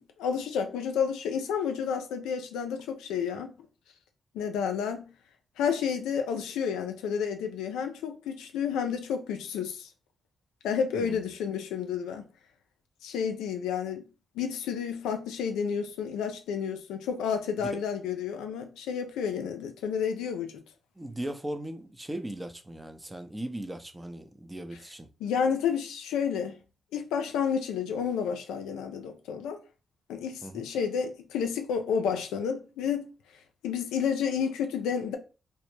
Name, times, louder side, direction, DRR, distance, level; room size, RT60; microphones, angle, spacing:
voice 1, 0.0-3.5 4.3-5.1 5.6-9.9 10.6-12.3 13.0-14.0 14.4-20.6 25.2-26.6 26.9-29.6 30.1-33.1 33.6-35.2, left 7 dB, 85° left, 0.3 m, -30 dB
voice 2, 21.0-25.1 30.4-30.7, right 1 dB, 15° right, 0.5 m, -38 dB
2.1 x 2.0 x 3.1 m
hypercardioid pair, 40°, 0 cm